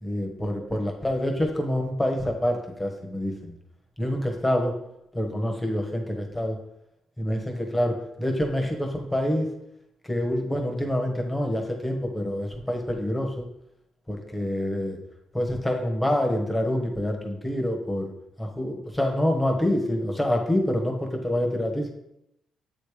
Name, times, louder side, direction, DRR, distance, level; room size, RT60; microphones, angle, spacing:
voice 1, 0.0-3.5 4.0-4.8 5.1-6.6 7.2-9.5 10.0-13.4 14.1-15.0 15.3-18.1 18.4-21.9, left 1 dB, 5° left, 2 dB, 1.3 m, -26 dB
7.8 x 3.2 x 5.0 m, 0.81 s
cardioid pair, 90°, 0 cm